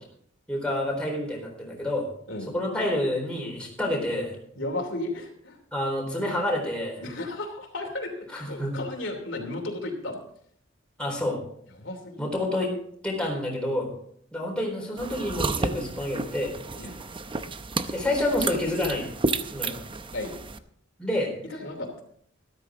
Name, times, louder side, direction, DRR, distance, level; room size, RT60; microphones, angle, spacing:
voice 1, 0.5-2.1 2.5-4.4 5.7-7.0 8.3-8.8 11.0-11.4 12.2-12.7 13.0-13.9 14.3-16.5 16.8-16.9 17.9-19.1 19.5-19.8 21.0-21.3, left 1 dB, 5° left, -2 dB, 4.0 m, -28 dB
voice 2, 4.6-5.6 7.0-10.2 11.8-12.2 16.7-17.0 20.1-20.3 21.6-22.0, left 2 dB, 70° left, 2 dB, 2.9 m, -34 dB
sound 1, 15.0-20.6, right 3 dB, 25° right, 0.7 m, -32 dB
13.5 x 13.0 x 3.7 m, 0.65 s
head